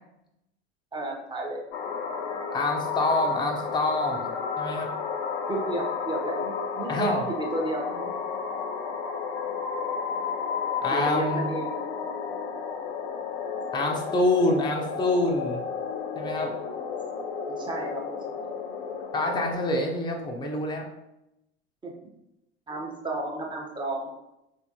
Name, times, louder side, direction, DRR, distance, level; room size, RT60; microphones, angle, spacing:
voice 1, 0.9-1.6 5.5-8.1 10.9-11.8 17.5-18.5 21.8-21.9 22.7-24.1, right 2 dB, 15° right, 0 dB, 1.0 m, -32 dB
sound 1, 1.7-19.5, left 6 dB, 60° left, 0.6 m, -32 dB
voice 2, 2.5-4.3 4.6-4.9 6.9-7.3 10.8-11.5 13.7-15.6 16.1-16.5 19.1-20.8, left 2 dB, 15° left, 1 dB, 0.7 m, -26 dB
4.2 x 3.4 x 2.8 m, 0.87 s
figure-of-eight pair, 75°, 33 cm